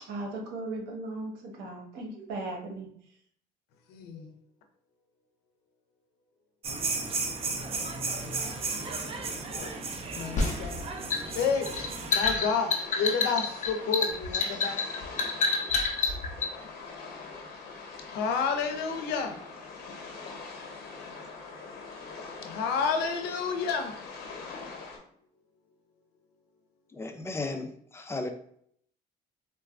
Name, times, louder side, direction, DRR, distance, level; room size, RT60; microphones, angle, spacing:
voice 1, 0.0-2.9, right 2 dB, 80° right, 0 dB, 0.9 m, -37 dB
voice 2, 3.9-4.3 9.6-9.7 10.1-10.9 11.3-14.8 18.1-19.4 22.4-24.0, left 5 dB, 90° left, 6 dB, 0.6 m, -30 dB
sound 1, 6.6-12.1, right 3 dB, 35° right, 0.6 m, -34 dB
sound 2, 10.4-16.5, left 4 dB, 45° left, 0.7 m, -28 dB
sound 3, 12.1-25.0, left 4 dB, 65° left, 1.0 m, -43 dB
voice 3, 26.9-28.3, left 3 dB, 15° left, 6 dB, 0.4 m, -35 dB
3.9 x 2.2 x 2.4 m, 0.65 s
cardioid pair, 110°, 17 cm